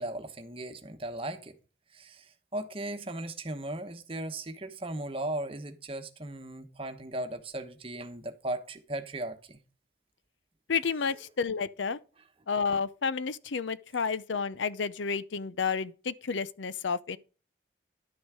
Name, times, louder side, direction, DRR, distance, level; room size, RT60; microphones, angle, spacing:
voice 1, 0.0-1.6 1.9-9.6, right 1 dB, 30° right, 1.1 m, -37 dB
voice 2, 10.7-12.0 12.5-17.2, left 5 dB, 85° left, 0.6 m, -31 dB
11.5 x 6.3 x 4.9 m
head